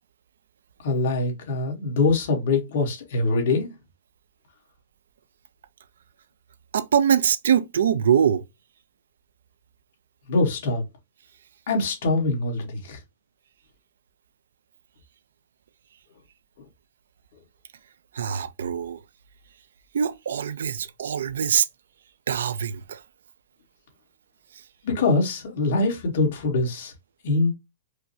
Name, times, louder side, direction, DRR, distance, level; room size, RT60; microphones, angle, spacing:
voice 1, 0.8-3.7 10.3-10.8 11.7-13.0 24.8-26.9 27.2-27.5, left 3 dB, 45° left, 1.5 m, -23 dB
voice 2, 6.7-8.4 18.1-19.0 19.9-21.7 22.3-23.0, right 8 dB, 75° right, 0.4 m, -23 dB
4.6 x 2.1 x 2.7 m
hypercardioid pair, 180°, 0 cm